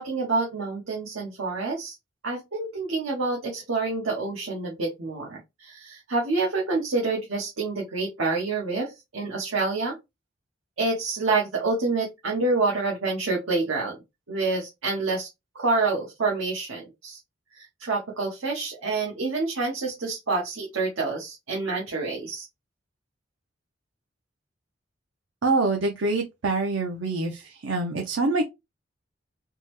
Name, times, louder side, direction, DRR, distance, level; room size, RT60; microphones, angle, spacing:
voice 1, 0.0-2.0 2.2-10.0 10.8-14.0 14.3-15.3 15.5-17.2 17.5-22.5, right 3 dB, 90° right, 1.0 m, -27 dB
voice 2, 25.4-28.4, right 3 dB, 70° right, 0.6 m, -25 dB
3.5 x 2.1 x 3.0 m
head